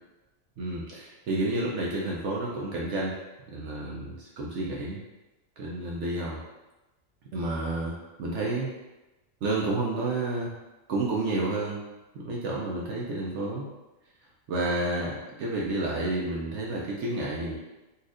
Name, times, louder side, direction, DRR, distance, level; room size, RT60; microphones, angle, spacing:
voice 1, 0.6-3.1 3.5-5.0 5.6-6.4 7.3-8.7 9.4-10.5 10.9-11.8 12.2-13.7 14.5-17.6, right 2 dB, 70° right, -4 dB, 0.8 m, -30 dB
4.0 x 2.4 x 2.5 m, 1.1 s
omnidirectional pair, 1.4 m